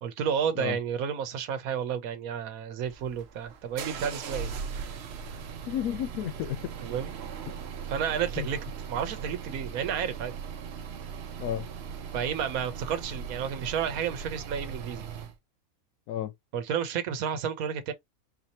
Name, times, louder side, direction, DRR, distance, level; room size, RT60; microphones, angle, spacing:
voice 1, 0.0-4.5 6.8-7.1 7.9-8.6 8.9-10.3 12.1-15.1 16.5-17.9, right 8 dB, 75° right, 1.2 m, -31 dB
sound 1, 2.8-15.4, right 6 dB, 55° right, 0.8 m, -39 dB
voice 2, 5.7-6.7 7.5-7.6 8.4-8.5 11.4-11.7 16.1-16.3, left 11 dB, 85° left, 1.1 m, -32 dB
4.2 x 2.7 x 2.9 m
omnidirectional pair, 1.5 m